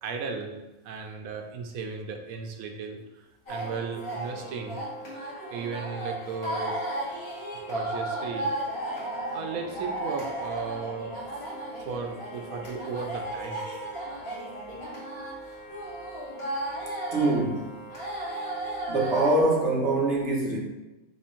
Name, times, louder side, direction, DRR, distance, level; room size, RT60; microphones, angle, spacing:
voice 1, 0.0-4.8 5.5-6.8 7.6-8.5 9.3-11.2 11.8-13.7, right 5 dB, 85° right, 1.1 m, -35 dB
sound 1, 3.5-19.4, right 1 dB, 50° left, 1.5 m, -35 dB
voice 2, 17.1-17.7 18.9-20.6, right 2 dB, 60° right, 1.1 m, -24 dB
3.4 x 3.1 x 4.4 m
omnidirectional pair, 1.5 m